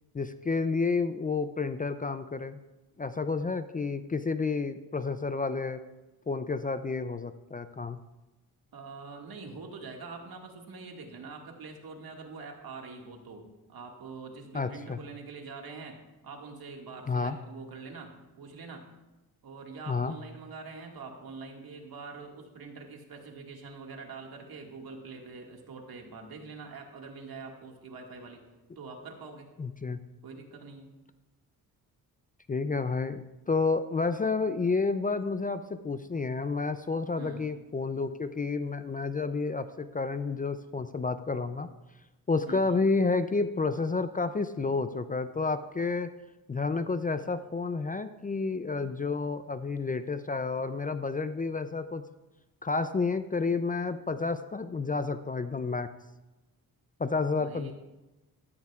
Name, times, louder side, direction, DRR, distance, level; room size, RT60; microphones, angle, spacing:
voice 1, 0.1-2.6 3.0-5.8 6.3-8.0 14.5-15.0 17.1-17.4 19.9-20.1 29.6-30.0 32.5-41.7 42.3-46.1 46.5-52.0 52.6-55.9 57.0-57.7, left 4 dB, 25° left, 11 dB, 0.4 m, -30 dB
voice 2, 8.7-18.9 19.4-28.4 28.8-29.5 30.2-30.9 37.2-37.5 42.5-42.8 57.4-57.7, right 4 dB, 70° right, 2 dB, 2.0 m, -44 dB
13.5 x 13.5 x 2.4 m, 1.0 s
cardioid pair, 85°, 38 cm